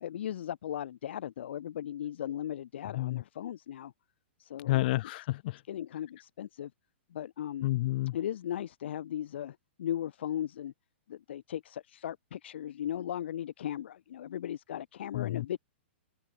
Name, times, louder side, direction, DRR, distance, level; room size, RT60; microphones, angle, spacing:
voice 1, 0.0-3.9 4.4-5.0 5.7-6.7 7.1-7.7 8.1-10.7 11.1-15.6, left 10 dB, 70° left, 3.4 m, -37 dB
voice 2, 4.7-5.6 7.6-8.2 15.1-15.4, left 17 dB, 50° left, 3.1 m, -30 dB
open air
hypercardioid pair, 145°, 6 cm